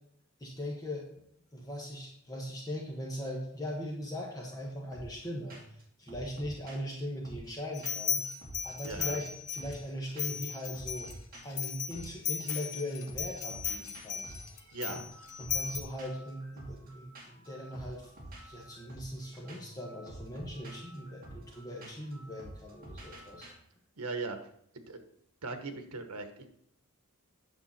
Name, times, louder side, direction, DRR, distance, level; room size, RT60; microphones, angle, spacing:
voice 1, 0.4-1.0 1.5-5.6 6.0-8.2 8.6-11.1 11.4-14.3 14.9-15.0 15.4-18.1 18.4-23.5, equal, 15° left, -1 dB, 1.3 m, -40 dB
sound 1, 4.9-5.2 5.5-5.8 6.1-8.1 8.4-9.9 10.2-10.5 10.7-12.8 13.1-23.5, right 1 dB, 40° right, 2.4 m, -49 dB
sound 2, 7.7-9.8 10.2-15.8, left 8 dB, 80° left, 1.0 m, -36 dB
voice 2, 8.8-9.2 14.7-15.0 24.0-24.4 24.9-25.0 25.4-26.5, right 3 dB, 85° right, 7 dB, 1.2 m, -38 dB
8.9 x 6.7 x 4.2 m, 0.71 s
head